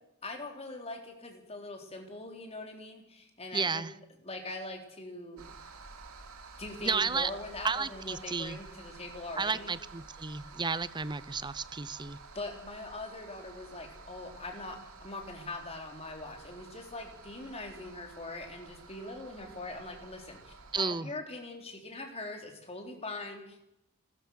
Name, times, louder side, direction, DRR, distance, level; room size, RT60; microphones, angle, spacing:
voice 1, 0.2-3.8 4.2-5.5 6.6-9.8 12.3-23.6, left 2 dB, 30° left, 3 dB, 3.8 m, -42 dB
voice 2, 3.5-3.9 6.8-7.3 7.6-8.6 9.4-12.2 20.7-21.1, right 5 dB, 20° right, 17 dB, 0.7 m, -32 dB
sound 1, 5.4-20.8, right 4 dB, 80° right, 2.6 m, -51 dB
29.0 x 14.0 x 6.5 m, 0.84 s
head